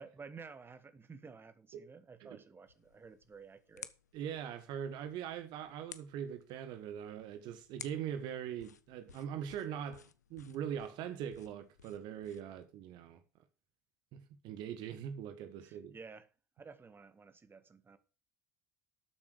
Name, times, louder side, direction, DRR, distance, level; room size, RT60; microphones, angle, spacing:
voice 1, 0.0-3.9 15.6-16.3 16.6-18.0, right 5 dB, 25° right, 1.8 m, -52 dB
sound 1, 2.7-12.7, left 7 dB, 80° left, 0.7 m, -56 dB
voice 2, 4.1-13.2 14.1-15.9, right 9 dB, 55° right, 1.3 m, -42 dB
13.0 x 7.2 x 4.8 m
figure-of-eight pair, 60°, 9 cm